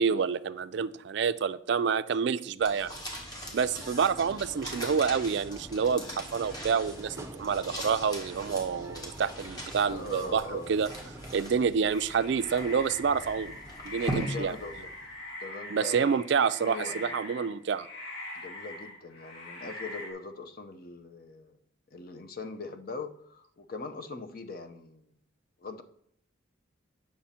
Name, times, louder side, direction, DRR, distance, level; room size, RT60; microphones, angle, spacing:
voice 1, 0.0-2.9 3.5-10.9 11.3-13.5 13.9-14.5 15.7-17.9, right 6 dB, 60° right, 13 dB, 0.4 m, -28 dB
sound 1, 2.6-15.2, equal, 20° left, 1.6 m, -41 dB
sound 2, 3.8-11.4, right 1 dB, 15° right, 0.6 m, -47 dB
voice 2, 9.7-10.8 14.1-14.9 15.4-16.2 16.6-17.1 18.3-21.6 21.9-25.1 25.6-25.8, left 3 dB, 45° left, 8 dB, 0.7 m, -41 dB
sound 3, 11.9-20.1, left 2 dB, 80° left, 2.8 m, -42 dB
8.4 x 6.1 x 4.3 m, 0.69 s
head